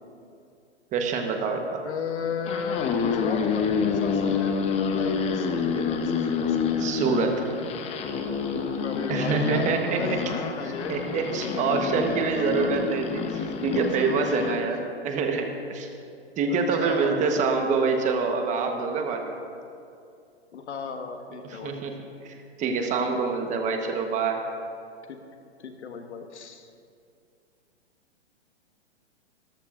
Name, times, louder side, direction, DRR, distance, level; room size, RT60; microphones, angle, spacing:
voice 1, 0.9-1.8 6.8-7.4 9.1-10.2 10.6-15.9 16.4-19.3 21.4-22.0 22.2-24.4, right 4 dB, 20° right, 4 dB, 1.1 m, -26 dB
voice 2, 1.8-4.5 5.0-6.7 8.8-12.9 13.7-14.6 16.5-17.2 20.5-21.8 25.1-25.2 25.6-26.7, left 5 dB, 75° left, 5 dB, 1.5 m, -35 dB
sound 1, 2.3-14.6, left 6 dB, 20° left, 0.8 m, -28 dB
23.0 x 13.5 x 2.5 m, 2.5 s
hypercardioid pair, 135°, 34 cm